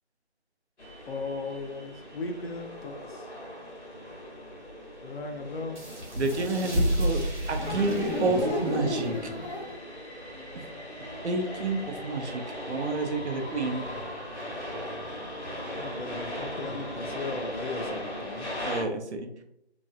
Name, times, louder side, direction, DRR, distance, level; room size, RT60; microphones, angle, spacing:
sound 1, 0.8-18.8, left 1 dB, 80° left, 1.4 m, -39 dB
voice 1, 1.1-3.3 5.0-6.0 15.8-18.5, left 3 dB, 60° left, 5 dB, 0.6 m, -37 dB
sound 2, 5.7-11.0, equal, 45° right, 1.1 m, -33 dB
voice 2, 6.2-7.2 7.5-9.3 11.2-13.8 18.6-19.3, right 3 dB, 80° right, 5 dB, 0.7 m, -30 dB
sound 3, 6.3-7.0 7.6-9.8, left 1 dB, ahead, 0.5 m, -32 dB
3.0 x 2.6 x 2.5 m, 0.77 s
figure-of-eight pair, 170°, 33 cm